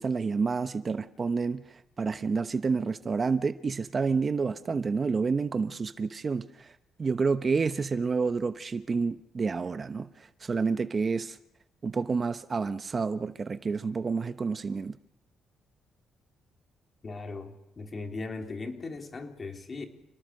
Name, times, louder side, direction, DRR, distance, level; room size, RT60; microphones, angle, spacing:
voice 1, 0.0-6.7 7.0-11.4 11.8-15.0, right 4 dB, 35° right, 1.0 m, -29 dB
voice 2, 17.0-19.9, left 3 dB, 35° left, 3.6 m, -38 dB
29.5 x 19.0 x 6.6 m
cardioid pair, 90°, 0 cm